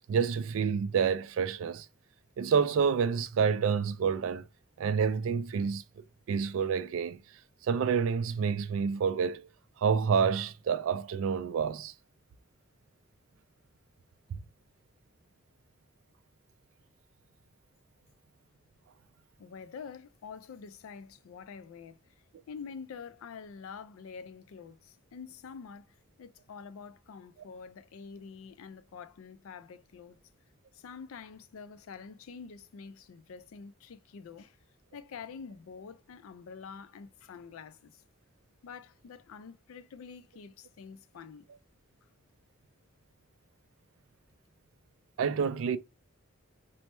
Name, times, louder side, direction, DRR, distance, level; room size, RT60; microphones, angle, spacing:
voice 1, 0.1-1.9 2.4-4.5 4.8-5.8 6.3-7.2 7.6-9.5 9.8-11.9 14.3-14.4 45.2-45.8, right 6 dB, 70° right, 0.3 m, -28 dB
voice 2, 19.4-22.0 22.5-30.2 30.7-34.6 34.9-38.0 38.6-41.5, left 6 dB, 75° left, 0.4 m, -47 dB
3.2 x 2.0 x 2.9 m
head